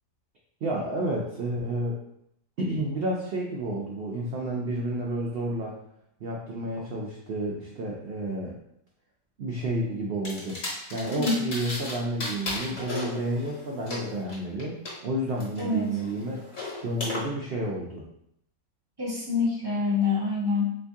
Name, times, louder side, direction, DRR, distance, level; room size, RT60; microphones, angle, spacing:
voice 1, 0.6-2.0 2.6-5.7 6.2-8.5 9.4-10.6 10.9-14.8 15.0-16.5 16.8-18.0, right 1 dB, 90° right, -2 dB, 0.5 m, -30 dB
sound 1, 10.2-11.9 12.2-14.9 15.4-17.2, left 2 dB, 65° left, 1.5 m, -35 dB
voice 2, 15.6-15.9 19.0-20.8, left 4 dB, 20° right, -6 dB, 0.7 m, -26 dB
3.4 x 3.0 x 2.6 m, 0.74 s
omnidirectional pair, 1.6 m